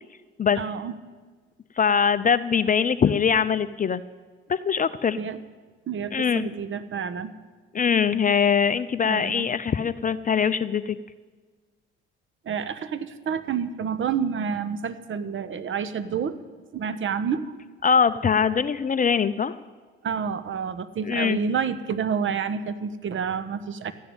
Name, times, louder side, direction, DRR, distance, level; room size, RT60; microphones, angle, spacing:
voice 1, 0.6-0.9 5.2-5.4 5.9-7.3 9.0-9.5 12.4-16.4 16.7-17.5 20.0-23.9, right 6 dB, 40° right, 13 dB, 1.1 m, -29 dB
voice 2, 1.8-4.0 4.5-5.2 6.1-6.5 7.7-11.0 17.8-19.5 21.0-21.4, left 6 dB, 25° left, 13 dB, 0.6 m, -22 dB
14.0 x 10.0 x 9.1 m, 1.4 s
hypercardioid pair, 65°, 30 cm